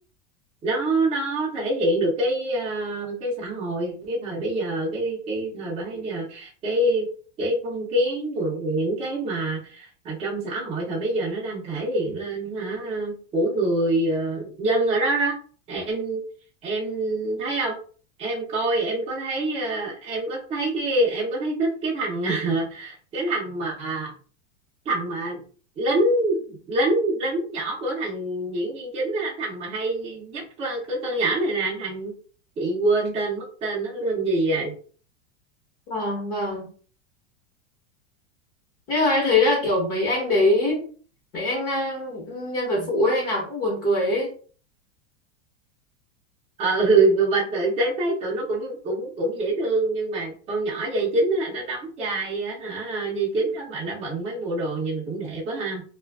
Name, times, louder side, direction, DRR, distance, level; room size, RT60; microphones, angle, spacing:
voice 1, 0.6-7.1 7.4-15.3 15.7-16.2 16.6-17.8 18.2-24.1 24.9-25.4 25.8-32.1 32.6-34.7 46.6-55.8, right 2 dB, 15° right, -5 dB, 0.6 m, -25 dB
voice 2, 35.9-36.7 38.9-40.9 41.3-44.3, left 2 dB, 40° left, -4 dB, 1.1 m, -23 dB
2.4 x 2.4 x 2.3 m, 0.41 s
supercardioid pair, 145°, 37 cm